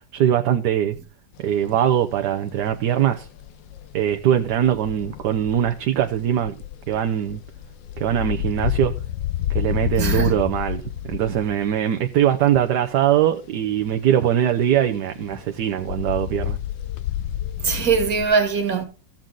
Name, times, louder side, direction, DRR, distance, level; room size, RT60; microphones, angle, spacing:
voice 1, 0.1-1.0 1.4-3.3 3.9-6.5 6.9-7.4 8.0-8.9 9.5-16.6, right 10 dB, 70° right, 1.3 m, -21 dB
sound 1, 1.3-2.2 2.5-13.3 13.6-18.3, left 12 dB, 90° left, 1.6 m, -30 dB
voice 2, 10.0-10.3 17.6-18.8, right 5 dB, 50° right, 2.1 m, -21 dB
14.5 x 7.5 x 3.9 m
omnidirectional pair, 2.0 m